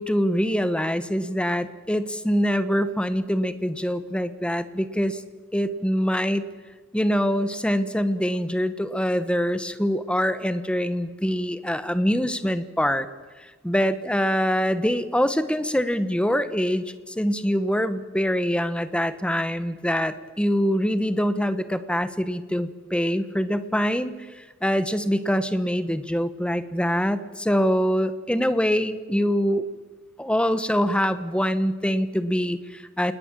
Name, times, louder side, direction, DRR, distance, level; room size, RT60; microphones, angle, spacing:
voice 1, 0.0-5.2 5.5-6.5 6.9-13.1 13.6-29.6 30.2-33.1, equal, 5° left, 12 dB, 1.2 m, -24 dB
28.0 x 20.0 x 7.6 m, 1.3 s
head